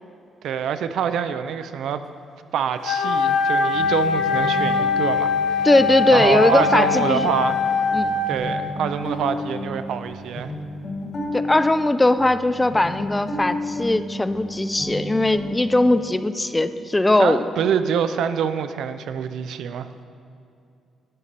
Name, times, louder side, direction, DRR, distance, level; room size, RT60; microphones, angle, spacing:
voice 1, 0.4-2.0 2.5-5.6 6.1-7.6 8.3-10.5 17.2-19.9, right 8 dB, 75° right, 10 dB, 0.4 m, -25 dB
Wind instrument woodwind instrument, 2.8-8.7, left 4 dB, 75° left, 0.7 m, -22 dB
sound 1, 3.7-16.1, left 1 dB, 40° left, 1.5 m, -32 dB
voice 2, 5.6-7.3 7.9-8.1 11.3-17.4, left 2 dB, 15° left, 12 dB, 0.3 m, -19 dB
11.0 x 5.2 x 4.2 m, 2.5 s
cardioid pair, 90°, 0 cm